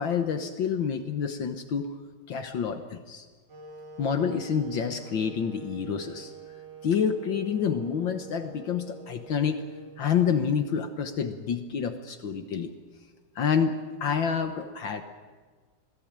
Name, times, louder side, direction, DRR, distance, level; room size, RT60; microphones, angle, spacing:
voice 1, 0.0-1.9 2.3-3.3 4.0-6.3 6.8-9.6 10.0-12.7 13.4-15.0, left 7 dB, 65° left, 7 dB, 1.9 m, -28 dB
Wind instrument woodwind instrument, 3.5-11.5, right 7 dB, 55° right, 3.0 m, -47 dB
26.5 x 18.0 x 8.9 m, 1.4 s
omnidirectional pair, 2.3 m